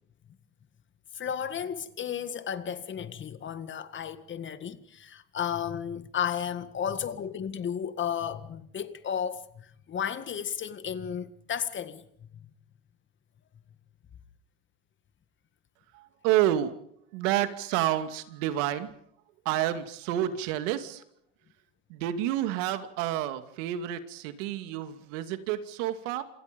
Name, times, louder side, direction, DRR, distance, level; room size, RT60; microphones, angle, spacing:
voice 1, 1.1-12.3, left 8 dB, 30° left, 1.9 m, -33 dB
voice 2, 15.9-16.7 17.1-18.9 19.4-21.0 21.9-26.2, right 12 dB, 80° right, 2.6 m, -29 dB
27.5 x 27.0 x 5.4 m
supercardioid pair, 130°, 37 cm